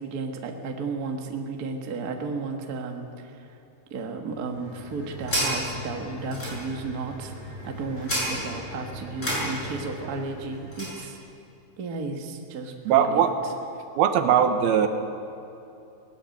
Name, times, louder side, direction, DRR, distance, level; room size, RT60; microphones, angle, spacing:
voice 1, 0.0-3.3 3.9-11.2 11.8-13.3, right 4 dB, 45° right, 3 dB, 1.2 m, -33 dB
water foutain pedal, 4.4-11.0, equal, 20° left, 6.7 m, -33 dB
voice 2, 12.9-13.3 14.0-14.9, right 8 dB, 85° right, 7 dB, 3.1 m, -20 dB
19.5 x 19.0 x 7.9 m, 2.7 s
omnidirectional pair, 4.4 m